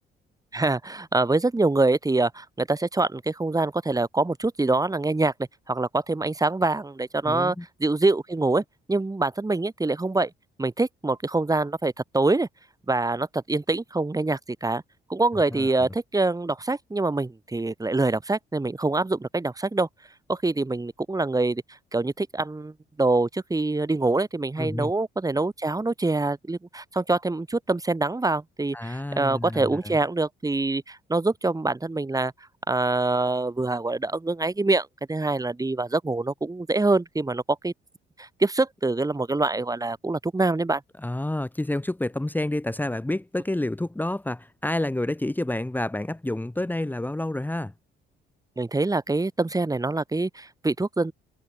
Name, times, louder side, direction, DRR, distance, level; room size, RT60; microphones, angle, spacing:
voice 1, 0.5-5.3 5.7-8.6 8.9-10.3 10.6-12.5 12.9-14.8 15.1-19.9 20.3-21.6 21.9-32.3 32.7-37.7 38.2-40.8 48.6-51.1, right 2 dB, 15° right, 3.2 m, -25 dB
voice 2, 7.3-7.7 15.5-15.8 24.6-24.9 28.7-30.0 41.0-47.7, left 1 dB, 10° left, 1.9 m, -29 dB
cardioid pair, 90°, 20 cm